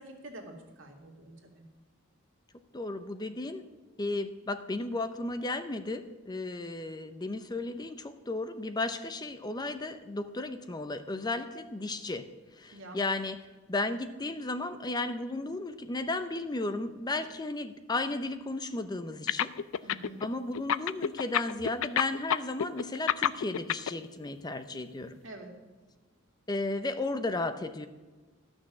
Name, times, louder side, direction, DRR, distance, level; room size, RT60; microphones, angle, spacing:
voice 1, 0.0-1.5 12.7-13.0 19.8-20.3 25.2-25.5, right 1 dB, 70° right, 1 dB, 2.3 m, -47 dB
voice 2, 2.7-3.6 4.0-12.3 12.6-13.4 13.7-19.5 20.2-25.2 26.5-27.9, left 2 dB, 20° left, 10 dB, 0.6 m, -34 dB
sound 1, 19.3-20.3 20.5-23.9, left 9 dB, 75° left, 0.4 m, -27 dB
13.0 x 6.2 x 7.3 m, 1.3 s
head